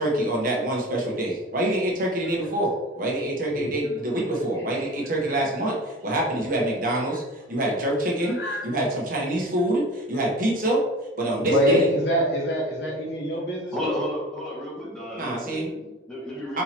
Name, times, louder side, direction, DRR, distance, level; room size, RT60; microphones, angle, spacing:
voice 1, 0.0-8.4 8.6-10.8 11.2-11.9 15.2-15.7 16.5-16.6, right 1 dB, 50° right, -3 dB, 1.1 m, -25 dB
voice 2, 8.3-8.7 9.9-10.0 11.4-14.0, equal, 65° left, -2 dB, 1.0 m, -26 dB
voice 3, 13.7-16.6, equal, 5° left, -7 dB, 1.4 m, -32 dB
4.3 x 3.7 x 3.0 m, 1.1 s
head